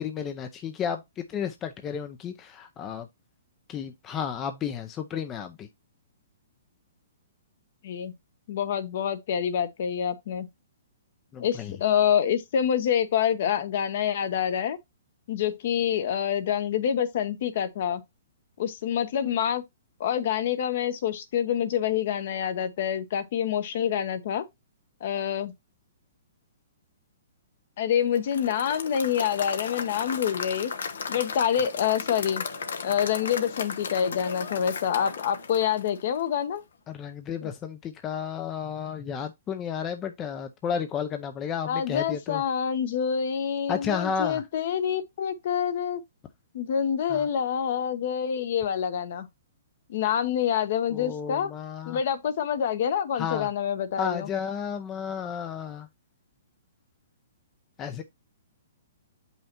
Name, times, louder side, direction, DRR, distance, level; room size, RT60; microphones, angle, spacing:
voice 1, 0.0-3.1 3.7-5.7 11.3-11.8 36.9-42.4 43.7-44.4 47.1-47.3 50.9-52.0 53.1-53.5 54.0-55.9 57.8-58.0, left 7 dB, 20° left, 0.5 m, -32 dB
voice 2, 8.5-10.5 11.4-14.8 15.3-18.0 18.6-19.6 20.0-24.4 25.0-25.5 27.8-30.7 31.1-32.4 32.8-36.6 37.4-37.5 41.7-46.0 46.5-49.3 49.9-51.5 51.9-54.3, left 8 dB, 50° left, 0.9 m, -27 dB
Applause / Crowd, 28.2-36.3, left 5 dB, 80° left, 1.0 m, -35 dB
7.5 x 5.5 x 2.9 m
hypercardioid pair, 155°, 0 cm